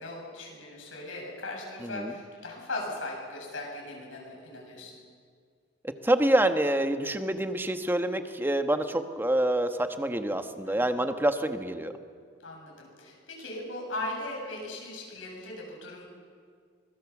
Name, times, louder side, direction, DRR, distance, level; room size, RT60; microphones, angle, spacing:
voice 1, 0.0-5.0 10.6-10.9 12.4-16.0, left 2 dB, 85° left, -1 dB, 7.7 m, -38 dB
voice 2, 6.0-11.9, right 1 dB, 10° right, 7 dB, 1.2 m, -26 dB
25.0 x 21.0 x 7.3 m, 2.1 s
head